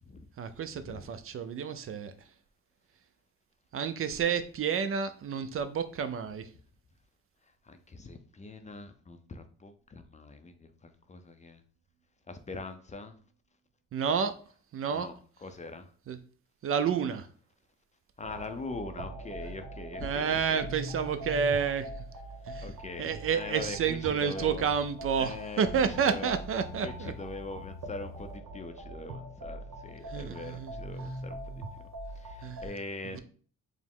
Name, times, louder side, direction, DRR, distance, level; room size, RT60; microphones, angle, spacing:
voice 1, 0.4-2.1 3.7-6.5 13.9-14.3 14.7-15.1 16.1-16.2 16.6-17.3 20.0-21.9 22.5-22.7 23.0-27.1 30.1-30.8 32.4-32.6 33.0-33.2, right 7 dB, 45° right, 10 dB, 0.4 m, -30 dB
voice 2, 7.6-11.6 12.3-13.2 14.9-15.2 15.4-15.9 18.2-20.7 22.6-24.7 25.2-25.6 25.9-26.4 26.8-31.6 32.1-33.2, left 3 dB, 25° left, 8 dB, 0.5 m, -42 dB
sound 1, 18.2-32.7, right 1 dB, 75° right, 1.1 m, -42 dB
4.8 x 2.1 x 3.7 m, 0.43 s
cardioid pair, 90°, 30 cm